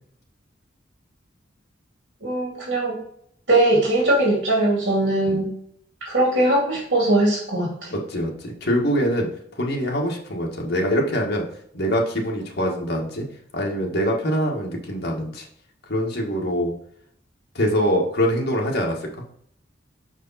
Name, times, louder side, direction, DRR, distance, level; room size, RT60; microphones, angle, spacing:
voice 1, 2.2-3.0 3.5-5.5 6.0-7.9, right 1 dB, 65° right, -4 dB, 2.5 m, -20 dB
voice 2, 7.9-11.4 11.7-13.2 13.5-15.5 15.9-16.7 17.5-19.1, equal, 60° left, -1 dB, 1.6 m, -24 dB
5.7 x 4.9 x 4.1 m, 0.67 s
head